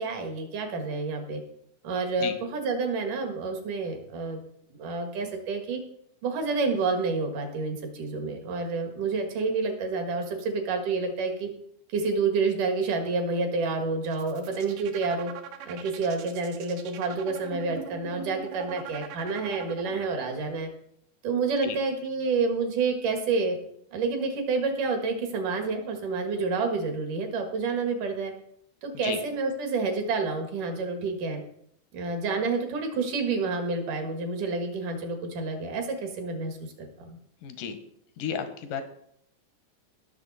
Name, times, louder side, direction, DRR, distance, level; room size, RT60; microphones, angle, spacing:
voice 1, 0.0-1.4 1.8-4.4 4.7-5.8 6.2-11.5 11.9-15.3 15.7-20.7 21.2-23.6 23.9-28.3 28.8-31.4 31.9-37.2, right 4 dB, 75° right, 4 dB, 3.2 m, -29 dB
sound 1, 14.1-20.3, right 9 dB, 90° right, 2.7 m, -41 dB
voice 2, 37.4-37.8 38.2-38.8, left 7 dB, 80° left, 8 dB, 2.7 m, -33 dB
18.0 x 6.8 x 4.1 m, 0.71 s
omnidirectional pair, 3.8 m